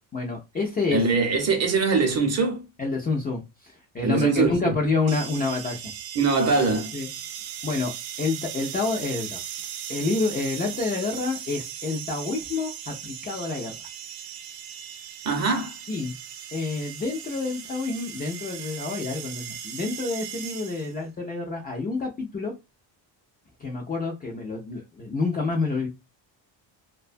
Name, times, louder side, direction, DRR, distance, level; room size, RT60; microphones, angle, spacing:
voice 1, 0.1-1.0 2.8-5.8 6.9-7.1 7.6-7.9 8.2-9.4 9.9-13.7 15.9-16.1 16.5-22.5 23.6-25.9, left 3 dB, 20° left, 0.4 m, -28 dB
voice 2, 0.9-2.6 4.0-4.7 6.1-6.9 15.2-15.8, right 4 dB, 35° right, 0.6 m, -22 dB
sound 1, 5.1-21.0, right 9 dB, 75° right, 0.6 m, -38 dB
2.6 x 2.2 x 2.5 m
cardioid pair, 145°, 46 cm